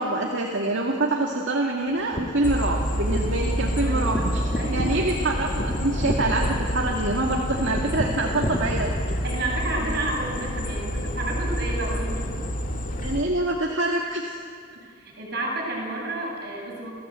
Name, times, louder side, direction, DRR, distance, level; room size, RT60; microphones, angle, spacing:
voice 1, 0.0-8.9 13.0-14.4, right 2 dB, 75° right, -1 dB, 2.1 m, -25 dB
sound 1, 1.9-9.1, equal, 25° left, 1.2 m, -32 dB
sound 2, 2.4-13.2, equal, 40° left, 1.8 m, -28 dB
voice 2, 3.8-5.0 9.2-12.3 14.8-16.9, right 2 dB, 50° right, -3 dB, 7.8 m, -31 dB
29.5 x 14.5 x 8.2 m, 2.2 s
head